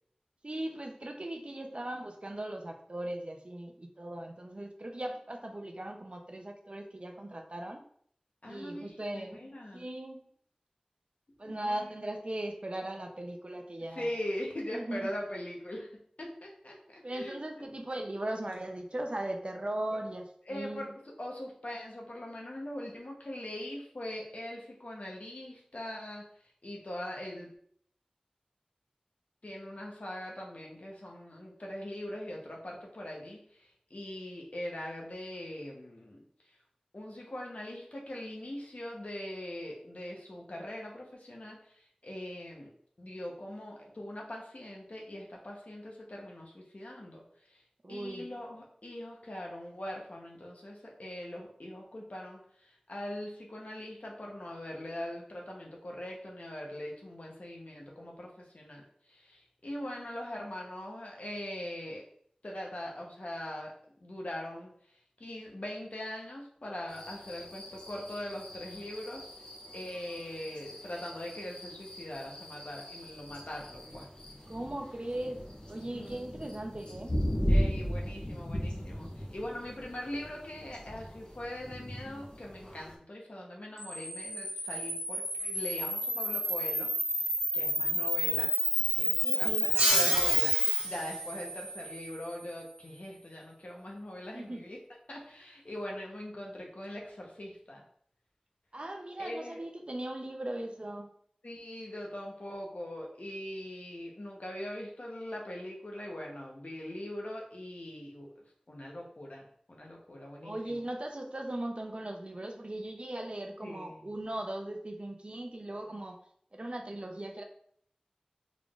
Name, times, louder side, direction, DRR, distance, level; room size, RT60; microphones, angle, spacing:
voice 1, 0.4-7.8 8.5-9.4 9.7-10.2 11.4-14.1 14.7-15.1 17.0-20.9 47.8-48.2 74.5-77.1 89.2-89.7 94.3-94.6 98.7-101.1 110.4-116.2 116.5-117.4, right 1 dB, 50° right, 3 dB, 0.5 m, -38 dB
voice 2, 8.4-8.9 9.1-9.9 11.4-11.9 13.9-15.9 16.2-17.7 20.5-20.9 21.2-26.3 26.6-27.5 29.4-36.2 36.9-42.7 43.0-47.2 47.5-47.6 47.9-58.8 59.1-62.0 62.4-64.7 65.2-69.3 69.7-74.1 75.9-76.7 77.5-86.9 87.5-88.5 89.0-94.8 95.1-97.8 99.2-99.6 101.4-108.3 108.7-110.8 113.6-114.1, left 1 dB, 70° left, -1 dB, 0.8 m, -41 dB
sound 1, 66.9-82.9, equal, 40° left, 0.9 m, -37 dB
Camera, 83.8-90.8, equal, 10° left, 0.9 m, -30 dB
sound 2, 89.7-93.0, right 1 dB, 85° right, 0.9 m, -33 dB
3.6 x 3.6 x 2.4 m, 0.63 s
wide cardioid pair, 40°, 2 cm